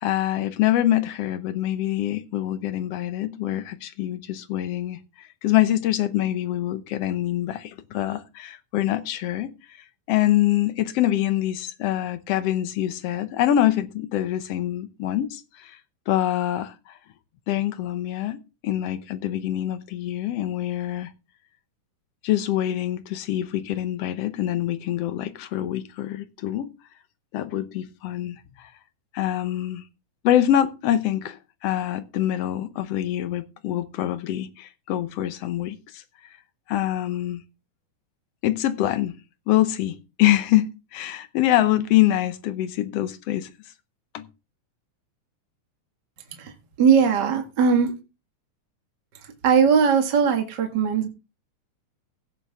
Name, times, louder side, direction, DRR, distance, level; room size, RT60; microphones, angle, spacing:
voice 1, 0.0-5.0 5.4-9.5 10.1-15.8 16.1-16.9 17.5-21.1 22.2-26.7 27.3-28.7 29.1-29.8 30.2-36.0 36.7-37.4 38.4-39.1 39.5-40.6 40.9-43.5 44.1-44.3, left 13 dB, 70° left, 1.6 m, -25 dB
voice 2, 46.8-47.9 49.4-51.1, right 6 dB, 40° right, 2.0 m, -19 dB
16.5 x 6.8 x 3.6 m
omnidirectional pair, 3.6 m